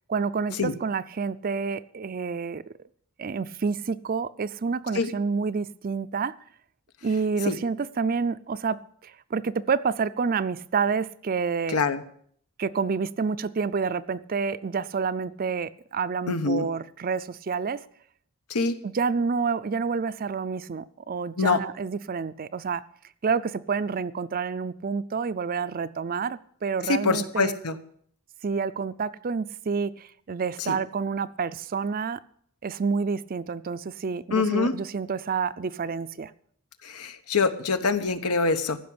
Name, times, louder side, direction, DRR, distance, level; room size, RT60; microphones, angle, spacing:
voice 1, 0.1-2.6 3.2-6.3 7.0-11.8 12.6-17.8 18.8-22.8 23.2-27.6 28.4-32.2 32.6-36.3, right 5 dB, 40° right, 0.4 m, -28 dB
voice 2, 11.7-12.0 16.3-16.6 18.5-18.8 21.4-21.6 26.9-27.8 30.7-30.8 34.3-34.7 36.8-38.8, left 4 dB, 90° left, 1.1 m, -24 dB
15.0 x 6.0 x 8.7 m
head